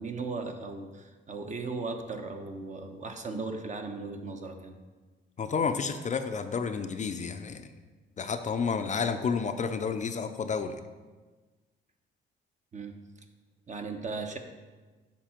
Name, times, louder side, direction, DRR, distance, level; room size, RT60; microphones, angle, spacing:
voice 1, 0.0-4.7 12.7-12.9 13.7-14.4, right 3 dB, 35° right, 5 dB, 0.9 m, -37 dB
voice 2, 5.4-7.7 8.2-10.8, left 5 dB, 40° left, 8 dB, 0.5 m, -30 dB
7.2 x 5.5 x 4.4 m, 1.3 s
cardioid pair, 90°, 20 cm